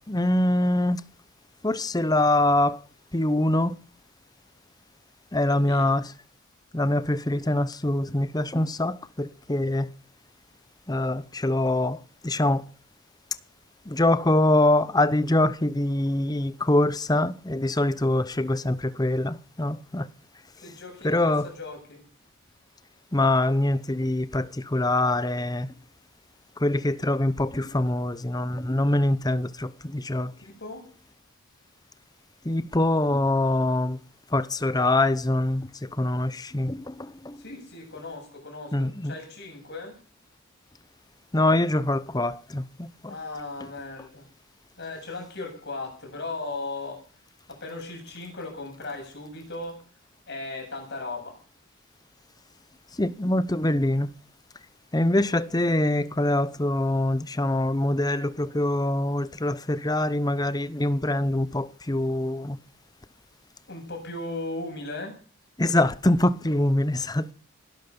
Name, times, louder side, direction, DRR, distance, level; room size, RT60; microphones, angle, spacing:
voice 1, 0.1-1.0 1.6-2.8 3.1-3.7 5.3-6.1 6.7-9.9 10.9-12.6 13.9-20.1 21.0-21.5 23.1-25.7 26.6-30.3 32.4-34.0 34.3-37.4 38.7-39.1 41.3-43.2 53.0-54.1 54.9-62.6 65.6-67.3, left 1 dB, 15° left, 0.8 m, -24 dB
voice 2, 5.4-6.0 20.6-22.0 30.5-30.9 37.4-40.0 43.1-44.3 44.8-47.0 47.5-49.8 50.3-51.4 63.7-65.1, left 2 dB, 50° left, 7.6 m, -37 dB
19.5 x 12.5 x 5.4 m
head